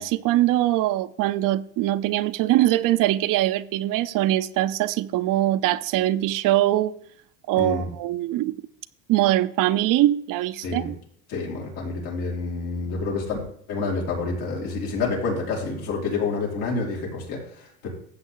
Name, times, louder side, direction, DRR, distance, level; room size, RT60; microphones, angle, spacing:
voice 1, 0.0-6.9 7.5-8.6 9.1-11.0, right 14 dB, 60° right, 0.7 m, -22 dB
voice 2, 7.6-7.9 10.6-10.9 11.3-13.4 13.7-17.9, left 4 dB, 75° left, 5.0 m, -28 dB
13.5 x 8.1 x 3.9 m
supercardioid pair, 100°, 37 cm